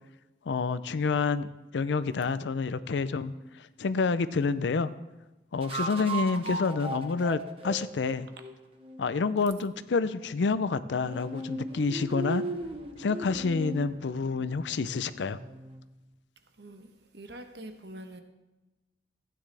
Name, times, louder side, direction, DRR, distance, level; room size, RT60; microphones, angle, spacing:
voice 1, 0.5-3.3 3.8-4.9 5.5-8.3 9.0-12.4 13.0-15.4, left 4 dB, 85° left, 0.5 m, -28 dB
sound 1, 3.3-3.4 5.6-9.0 11.0-15.8, right 2 dB, 30° right, 1.0 m, -37 dB
voice 2, 16.6-18.2, right 1 dB, 70° right, 1.1 m, -45 dB
15.0 x 9.5 x 3.4 m
head